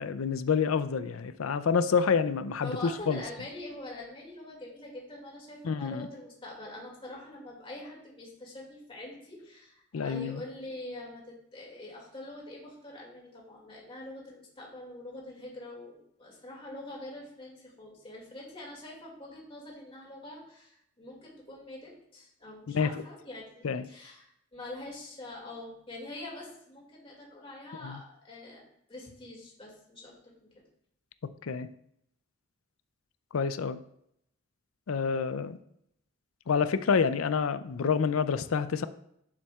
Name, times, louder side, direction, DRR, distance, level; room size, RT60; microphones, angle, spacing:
voice 1, 0.0-3.2 5.6-6.1 9.9-10.4 22.7-22.9 23.6-23.9 27.8-28.0 31.4-31.7 33.3-33.8 34.9-35.6 36.5-38.9, left 6 dB, 85° left, 13 dB, 0.5 m, -28 dB
voice 2, 2.6-30.5, left 1 dB, 25° left, -3 dB, 2.3 m, -44 dB
10.0 x 7.2 x 2.4 m, 0.73 s
head